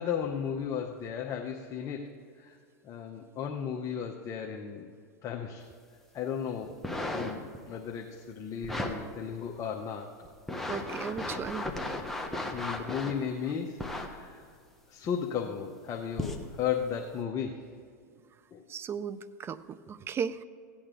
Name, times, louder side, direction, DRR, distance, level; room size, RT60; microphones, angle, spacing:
voice 1, 0.0-2.1 2.4-2.6 2.8-4.9 5.2-5.7 6.1-6.8 7.1-10.1 12.5-14.4 14.9-17.7 18.5-18.6, left 7 dB, 35° left, 1 dB, 0.9 m, -35 dB
sound 1, 6.7-7.6 8.6-9.0 9.6-9.7 10.2-13.2 13.8-14.1 15.0-15.1 16.1-16.5 17.1-17.2, left 1 dB, 5° left, 1.1 m, -35 dB
voice 2, 10.7-11.7 18.7-20.4, right 7 dB, 25° right, 15 dB, 0.4 m, -36 dB
16.0 x 8.7 x 3.8 m, 2.2 s
hypercardioid pair, 110°, 10 cm